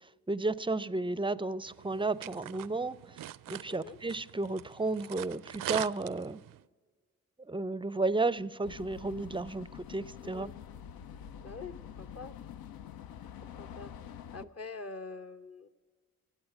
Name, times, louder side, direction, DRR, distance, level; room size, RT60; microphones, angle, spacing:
voice 1, 0.3-6.4 7.5-10.5, right 3 dB, 15° right, 0.4 m, -33 dB
sound 1, 1.7-6.6, right 13 dB, 70° right, 0.5 m, -42 dB
voice 2, 3.7-4.0 10.2-10.5 11.4-12.4 13.6-15.7, left 4 dB, 45° left, 1.0 m, -45 dB
sound 2, 8.6-14.4, left 9 dB, 85° left, 0.6 m, -47 dB
16.5 x 8.5 x 9.1 m
cardioid pair, 60°, 35 cm